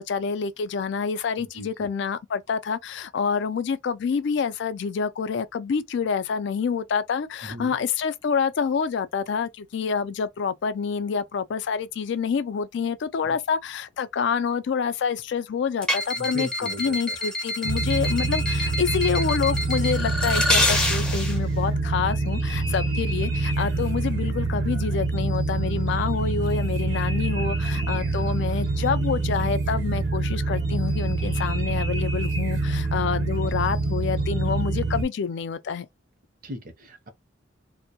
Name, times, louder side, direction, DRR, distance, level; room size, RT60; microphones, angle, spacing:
voice 1, 0.0-35.9, left 6 dB, 65° left, 0.3 m, -27 dB
voice 2, 1.4-1.9 7.4-7.8 13.2-13.4 16.2-17.2 22.9-23.0 27.7-28.0 36.4-37.1, equal, 45° right, 0.6 m, -38 dB
sound 1, 15.8-21.4, left 1 dB, 5° left, 0.5 m, -27 dB
sound 2, 17.6-35.0, right 3 dB, 80° right, 0.9 m, -26 dB
2.2 x 2.1 x 2.7 m
head